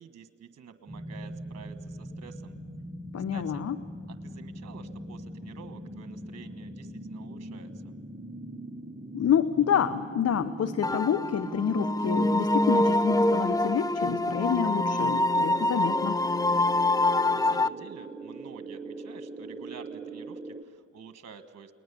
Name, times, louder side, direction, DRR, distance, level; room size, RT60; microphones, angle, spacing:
voice 1, 0.0-2.5 3.3-3.6 4.2-7.9 17.3-21.7, right 6 dB, 60° right, 10 dB, 1.4 m, -49 dB
sound 1, 0.9-20.6, right 2 dB, 20° right, 1.6 m, -41 dB
voice 2, 3.1-3.8 9.1-16.2, left 8 dB, 55° left, 13 dB, 1.0 m, -28 dB
sound 2, 10.8-17.7, left 2 dB, 10° left, 0.7 m, -25 dB
29.0 x 20.0 x 7.0 m, 2.3 s
supercardioid pair, 50°, 30 cm